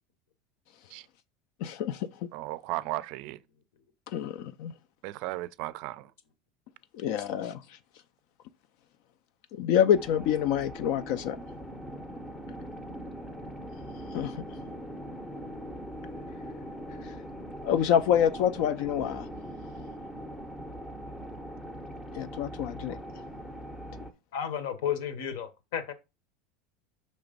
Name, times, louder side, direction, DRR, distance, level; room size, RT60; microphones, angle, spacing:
voice 1, 1.6-2.1 4.1-4.7 6.9-7.6 9.5-11.4 14.1-14.4 17.0-17.1 17.6-19.3 22.1-23.0, left 9 dB, 55° left, 0.4 m, -27 dB
voice 2, 2.3-3.4 5.0-6.1, right 17 dB, 55° right, 0.4 m, -35 dB
sound 1, 9.9-24.1, equal, 10° left, 0.6 m, -41 dB
voice 3, 24.3-25.9, left 9 dB, 75° left, 1.1 m, -32 dB
6.0 x 3.1 x 5.1 m
supercardioid pair, 160°, 0 cm